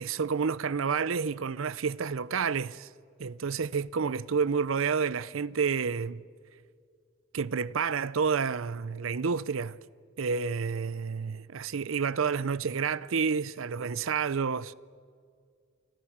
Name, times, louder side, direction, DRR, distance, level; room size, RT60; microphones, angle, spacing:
voice 1, 0.0-2.9 3.2-6.2 7.3-9.8 10.2-14.7, right 6 dB, 80° right, 0.6 m, -29 dB
28.5 x 26.0 x 7.4 m
head